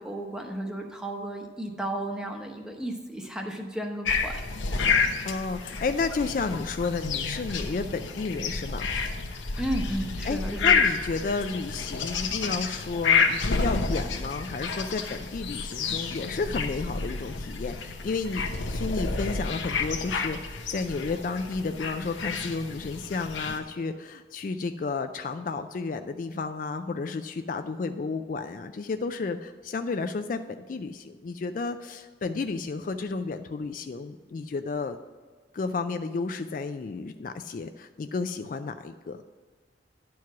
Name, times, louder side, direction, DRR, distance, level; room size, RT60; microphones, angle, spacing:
voice 1, 0.0-4.4 9.6-10.8, right 1 dB, 5° right, 2 dB, 0.9 m, -33 dB
sound 1, 4.0-23.6, left 5 dB, 85° left, 0.9 m, -29 dB
voice 2, 5.2-9.0 10.2-18.4 18.7-35.0 35.5-39.2, left 4 dB, 45° left, 8 dB, 0.3 m, -32 dB
10.5 x 4.7 x 5.9 m, 1.5 s
head